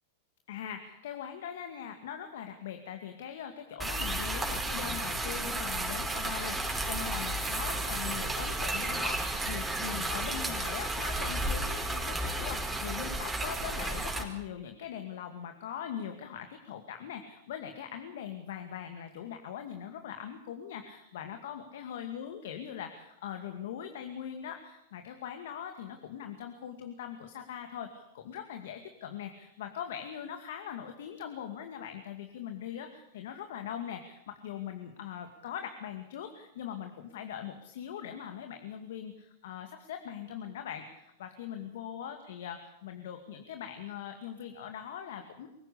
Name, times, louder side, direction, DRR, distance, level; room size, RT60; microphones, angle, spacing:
voice 1, 0.5-45.5, left 9 dB, 70° left, 6 dB, 2.3 m, -41 dB
sound 1, 3.8-14.2, right 2 dB, 10° right, 4.7 m, -33 dB
24.5 x 16.0 x 8.5 m, 0.83 s
hypercardioid pair, 105°, 0 cm